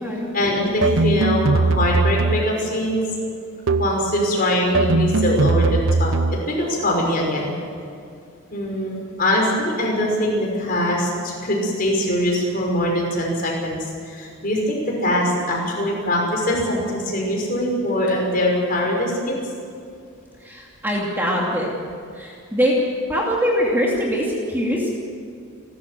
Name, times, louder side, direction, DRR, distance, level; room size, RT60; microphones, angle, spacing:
voice 1, 0.3-3.0 3.8-7.5 8.5-19.3, left 1 dB, 40° left, -1 dB, 5.7 m, -22 dB
sound 1, 0.8-2.6 3.7-4.1 4.7-6.5, right 3 dB, 55° right, 0.6 m, -20 dB
voice 2, 20.4-21.7 22.1-22.8 23.1-24.9, equal, 10° right, -3 dB, 2.7 m, -22 dB
29.0 x 13.5 x 7.7 m, 2.4 s
head